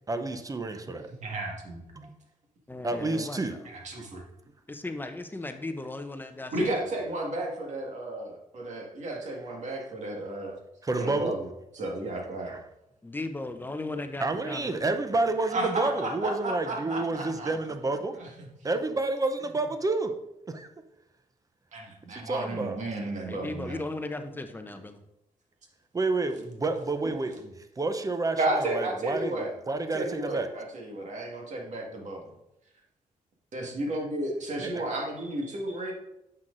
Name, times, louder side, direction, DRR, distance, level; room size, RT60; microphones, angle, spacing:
voice 1, 0.1-1.1 2.0-2.1 2.8-3.6 10.9-11.3 12.5-12.6 14.2-18.2 18.6-20.2 20.5-20.7 22.1-22.8 25.9-27.5 27.8-30.6 34.6-34.9, right 3 dB, 25° right, 8 dB, 0.6 m, -29 dB
voice 2, 1.2-1.8 3.6-4.2 6.5-10.5 11.0-11.5 11.7-12.6 15.5-17.5 18.2-18.5 21.7-23.8 28.3-29.5 29.9-32.3 33.5-35.9, right 1 dB, 55° right, 0 dB, 1.7 m, -33 dB
voice 3, 2.7-3.6 4.7-6.7 13.0-14.9 23.2-25.0, left 2 dB, 15° left, 7 dB, 0.6 m, -37 dB
7.5 x 5.8 x 2.5 m, 0.86 s
cardioid pair, 90°, 14 cm